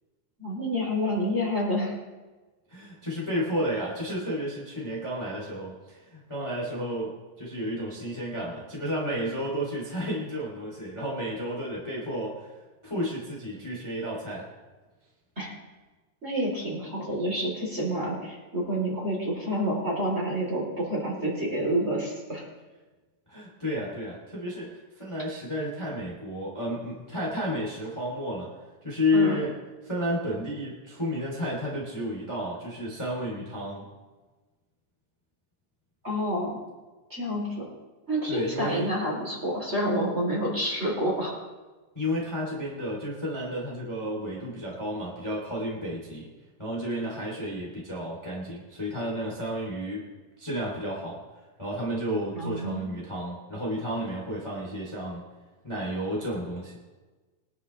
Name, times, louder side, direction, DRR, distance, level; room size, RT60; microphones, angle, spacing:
voice 1, 0.4-1.9 15.4-15.5 16.2-22.4 29.1-29.4 36.0-36.6 37.1-37.7 38.1-41.5 52.3-52.9, equal, 15° right, -4 dB, 3.7 m, -28 dB
voice 2, 2.7-12.5 12.8-14.4 23.3-28.5 28.8-29.5 29.8-33.8 38.3-38.9 41.9-46.3 46.6-50.0 50.4-51.2 51.6-55.2 55.6-56.8, equal, 10° left, -5 dB, 2.7 m, -31 dB
23.0 x 12.0 x 3.4 m, 1.3 s
omnidirectional pair, 4.2 m